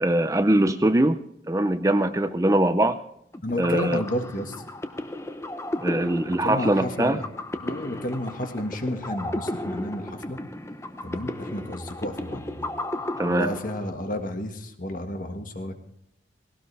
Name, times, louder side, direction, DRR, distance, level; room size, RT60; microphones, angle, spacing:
voice 1, 0.0-1.2 1.5-3.0 3.6-4.0 5.8-7.2 13.2-13.5, right 1 dB, 15° right, 10 dB, 0.5 m, -22 dB
sound 1, 3.3-14.2, left 1 dB, 15° left, 0.8 m, -34 dB
voice 2, 3.4-4.6 6.4-7.2 7.5-10.4 11.0-12.7 13.3-15.8, left 1 dB, 45° left, 6 dB, 1.7 m, -31 dB
19.0 x 17.5 x 3.4 m, 0.72 s
head